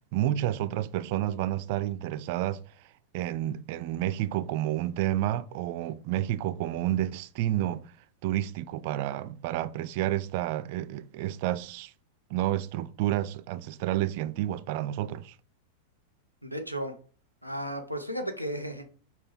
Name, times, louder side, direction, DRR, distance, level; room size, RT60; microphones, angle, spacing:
voice 1, 0.1-2.6 3.1-7.9 8.2-11.9 12.3-15.3, right 13 dB, 50° right, 0.3 m, -30 dB
voice 2, 16.4-17.0 17.4-18.9, equal, 90° left, 0.7 m, -34 dB
5.3 x 2.2 x 4.4 m
figure-of-eight pair, 90°, 0 cm